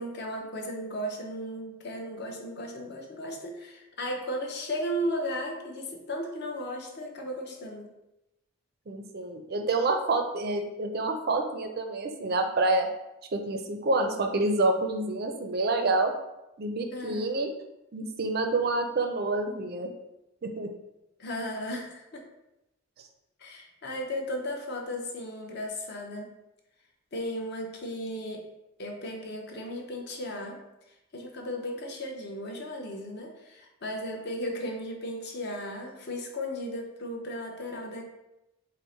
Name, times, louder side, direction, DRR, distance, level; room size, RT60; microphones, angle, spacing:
voice 1, 0.0-7.9 16.9-17.4 21.2-22.2 23.4-26.3 27.1-28.4 28.8-30.6 31.1-38.0, equal, 50° left, 1 dB, 0.7 m, -35 dB
voice 2, 8.9-12.9 13.3-16.1 16.6-17.5 17.9-19.9 20.4-20.7, right 2 dB, 45° right, 5 dB, 0.4 m, -28 dB
5.2 x 2.1 x 4.4 m, 0.92 s
head